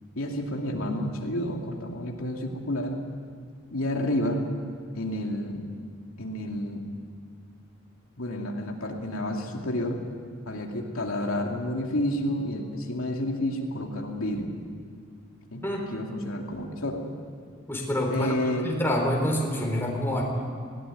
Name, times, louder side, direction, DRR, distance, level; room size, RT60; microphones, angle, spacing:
voice 1, 0.1-3.0 3.7-4.4 4.9-5.6 6.2-6.8 8.2-10.0 10.4-14.5 15.5-15.6 15.9-17.0 18.1-18.7, left 1 dB, 85° left, 1 dB, 2.6 m, -30 dB
voice 2, 17.7-18.4 18.6-20.2, equal, 10° left, 0 dB, 3.9 m, -27 dB
20.0 x 18.0 x 9.5 m, 2.3 s
head